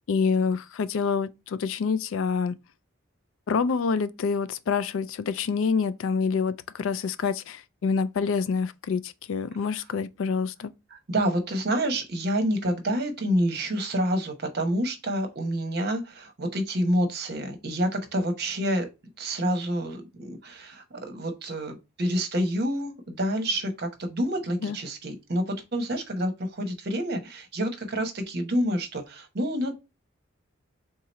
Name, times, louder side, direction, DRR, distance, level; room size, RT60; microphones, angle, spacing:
voice 1, 0.1-2.5 3.5-10.7 24.6-24.8, left 5 dB, 75° left, 0.4 m, -27 dB
voice 2, 10.9-18.9 19.2-29.7, equal, 50° right, 0.9 m, -28 dB
3.6 x 2.9 x 4.1 m
head